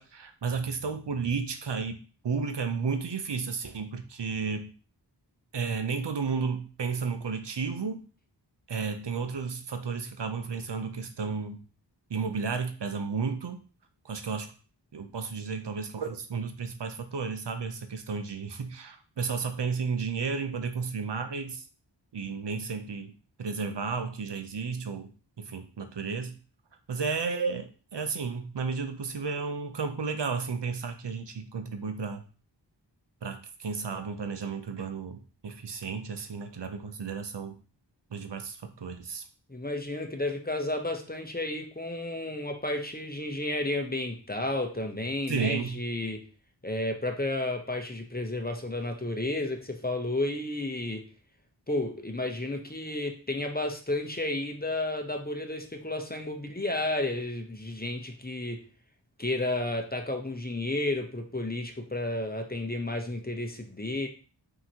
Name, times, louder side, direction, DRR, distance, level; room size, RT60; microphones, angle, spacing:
voice 1, 0.0-2.0 2.2-4.7 5.5-8.0 8.7-11.6 12.1-13.6 14.0-14.5 14.9-21.7 22.1-23.1 23.4-25.1 25.4-26.4 26.9-32.2 33.2-37.5 38.1-39.2 45.3-45.8, right 5 dB, 65° right, 7 dB, 0.6 m, -33 dB
voice 2, 39.5-46.2 46.6-51.1 51.7-58.6 59.2-64.1, left 2 dB, 20° left, 4 dB, 0.8 m, -32 dB
5.6 x 2.8 x 2.8 m, 0.37 s
wide cardioid pair, 45°, 44 cm